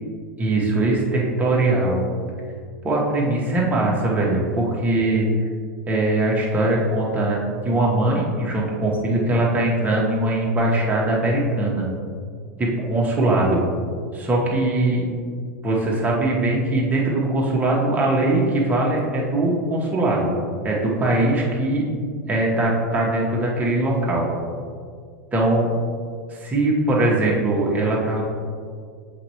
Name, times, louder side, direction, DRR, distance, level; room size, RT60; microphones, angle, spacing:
voice 1, 0.4-2.0 2.8-5.3 5.9-7.4 7.6-11.9 12.6-13.6 14.1-15.1 15.6-20.3 20.6-21.9 22.3-24.3 25.3-25.7 26.3-28.2, right 2 dB, 15° right, -3 dB, 1.4 m, -21 dB
7.5 x 4.3 x 3.1 m, 2.1 s
figure-of-eight pair, 95°, 9 cm